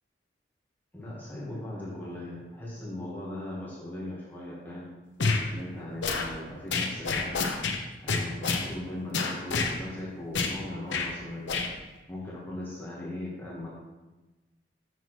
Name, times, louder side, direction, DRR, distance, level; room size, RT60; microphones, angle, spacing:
voice 1, 0.9-4.9 5.5-7.3 8.0-11.5 12.1-13.7, left 1 dB, 10° left, -7 dB, 1.3 m, -38 dB
sound 1, 5.2-5.4 6.0-6.3 6.7-7.8 8.1-8.7 9.1-9.7 10.3-10.6 10.9-11.1 11.5-11.7, left 4 dB, 90° left, 0.7 m, -27 dB
6.8 x 6.0 x 3.1 m, 1.1 s
head